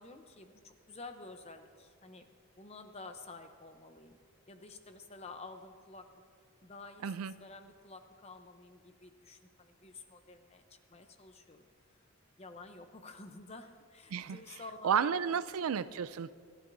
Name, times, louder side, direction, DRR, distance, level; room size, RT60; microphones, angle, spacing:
voice 1, 0.0-2.3 2.6-4.2 4.5-6.0 6.6-11.6 12.4-15.4, left 3 dB, 30° left, 0.7 m, -50 dB
voice 2, 7.0-7.3 14.1-16.3, right 7 dB, 85° right, 0.4 m, -33 dB
28.5 x 11.5 x 2.7 m
head